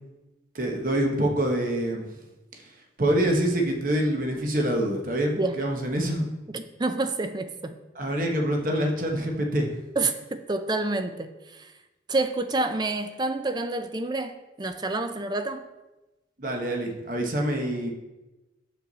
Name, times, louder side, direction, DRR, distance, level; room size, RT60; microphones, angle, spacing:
voice 1, 0.5-2.1 3.0-6.2 8.0-9.7 16.4-17.9, right 1 dB, 50° right, 2 dB, 1.1 m, -25 dB
voice 2, 6.5-7.8 10.0-11.7 12.1-15.6, right 2 dB, 25° right, 9 dB, 0.5 m, -28 dB
7.9 x 7.1 x 4.0 m, 1.1 s
head